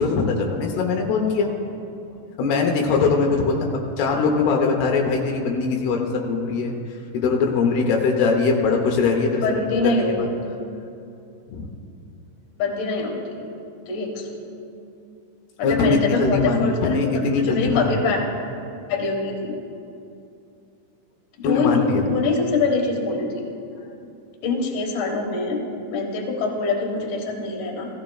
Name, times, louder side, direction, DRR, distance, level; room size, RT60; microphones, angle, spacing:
voice 1, 0.0-1.5 2.4-3.6 4.0-6.7 7.1-9.6 10.2-10.3 11.5-11.7 15.6-17.9 21.4-22.1, left 4 dB, 85° left, 1 dB, 2.9 m, -21 dB
voice 2, 9.4-10.2 12.6-13.3 13.9-14.3 15.6-18.2 18.9-19.5 21.4-23.4 24.4-25.6 25.9-27.9, left 3 dB, 60° left, -1 dB, 2.7 m, -24 dB
17.0 x 15.0 x 2.3 m, 2.6 s
omnidirectional pair, 4.5 m